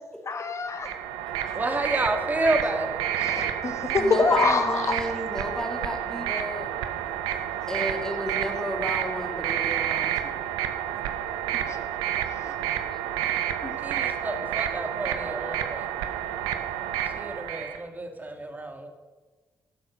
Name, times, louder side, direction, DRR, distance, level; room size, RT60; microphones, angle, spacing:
voice 1, 0.2-0.9 3.2-4.9 11.7-11.8 13.6-13.7, left 4 dB, 45° left, 7 dB, 1.6 m, -25 dB
sound 1, 0.7-17.8, right 10 dB, 85° right, 0.7 m, -30 dB
voice 2, 1.5-3.0 13.8-15.9 17.1-18.9, right 1 dB, 25° right, 5 dB, 2.1 m, -29 dB
voice 3, 4.0-6.7 7.7-10.4 12.4-12.6 13.4-13.5, equal, 10° left, 2 dB, 2.4 m, -33 dB
11.0 x 7.5 x 6.4 m, 1.3 s
hypercardioid pair, 45°, 7 cm